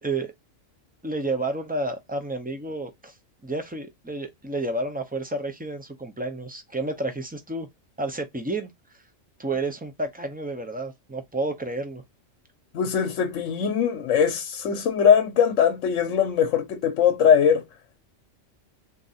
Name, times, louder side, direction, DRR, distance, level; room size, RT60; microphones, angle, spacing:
voice 1, 0.0-0.3 1.0-3.1 3.4-7.7 8.0-8.7 9.4-12.0, right 2 dB, 10° right, 0.4 m, -30 dB
voice 2, 12.7-17.6, left 7 dB, 85° left, 1.1 m, -21 dB
3.7 x 2.7 x 4.0 m
omnidirectional pair, 1.3 m